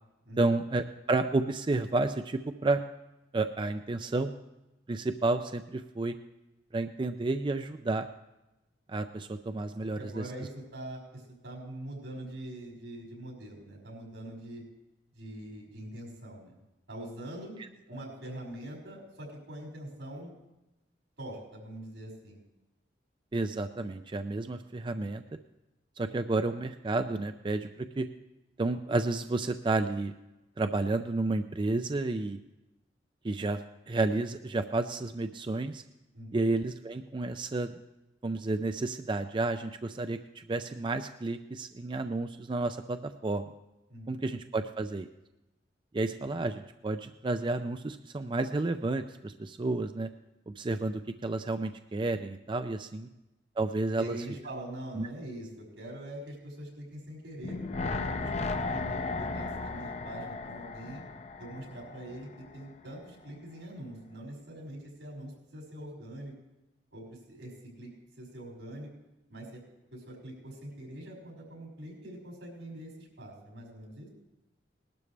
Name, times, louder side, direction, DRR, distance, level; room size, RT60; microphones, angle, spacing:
voice 1, 0.4-2.8 3.3-4.3 4.9-6.2 6.7-8.1 8.9-10.2 17.9-18.0 23.3-25.2 26.0-28.1 28.6-30.1 30.6-32.4 33.2-35.8 36.3-37.7 38.2-43.4 44.1-45.1 45.9-50.1 50.5-53.1 53.6-54.2 55.0-55.1, right 2 dB, 25° right, 8 dB, 0.4 m, -31 dB
voice 2, 9.8-14.6 15.1-16.6 16.9-17.5 17.9-20.3 21.2-22.4 36.1-36.5 43.9-44.3 54.0-57.6 57.9-61.0 61.4-66.3 66.9-67.5 67.8-67.9 68.2-68.9 69.3-69.6 69.9-74.1, right 1 dB, 90° right, -2 dB, 5.7 m, -43 dB
sound 1, 57.4-62.6 62.9-63.0, left 3 dB, 35° left, 0.6 m, -35 dB
19.5 x 12.0 x 3.3 m, 0.97 s
head